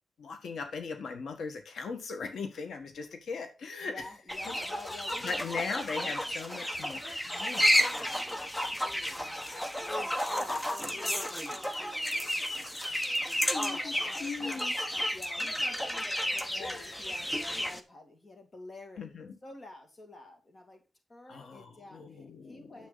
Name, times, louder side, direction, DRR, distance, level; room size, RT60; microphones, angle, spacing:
voice 1, 0.2-4.1 4.5-4.6 5.2-7.8 13.5-14.7 16.6-16.9 19.0-19.3 21.3-22.7, left 4 dB, 90° left, 1.4 m, -39 dB
voice 2, 3.8-5.8 8.1-8.5 8.9-14.6 14.9-19.2 19.4-20.8 21.1-22.9, left 2 dB, 30° left, 2.3 m, -50 dB
sound 1, 4.3-17.8, equal, 10° left, 0.9 m, -32 dB
9.9 x 7.2 x 4.0 m
wide cardioid pair, 170°, 0 cm